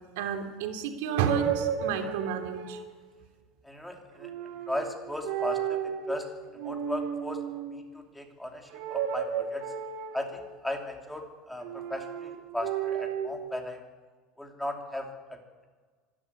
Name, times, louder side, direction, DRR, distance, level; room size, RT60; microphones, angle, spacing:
voice 1, 0.2-2.8, right 7 dB, 80° right, 5 dB, 3.2 m, -31 dB
sound 1, 1.1-2.9 4.2-4.9 5.2-6.2 6.5-7.7 8.7-10.5 11.6-13.3, right 8 dB, 65° right, 4.2 m, -33 dB
voice 2, 3.6-4.3 4.7-6.3 6.6-7.4 7.7-9.6 10.1-13.8 14.4-15.1, left 1 dB, 5° left, 3 dB, 2.8 m, -36 dB
25.0 x 12.0 x 9.7 m, 1.4 s
cardioid pair, 165°, 0 cm